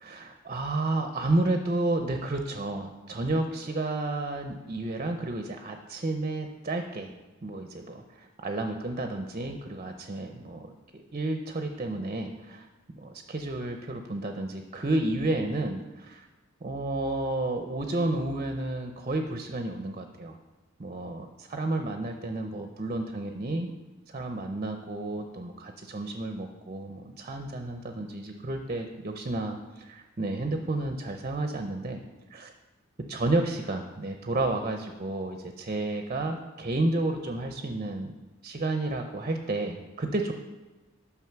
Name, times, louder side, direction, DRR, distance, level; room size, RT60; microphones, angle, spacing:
voice 1, 0.0-7.1 7.4-12.7 12.9-16.3 16.6-20.4 20.8-23.7 24.1-32.0 32.3-32.5 33.1-38.1 38.4-40.3, right 2 dB, 35° right, 5 dB, 0.7 m, -31 dB
9.4 x 6.1 x 5.9 m, 1.2 s
head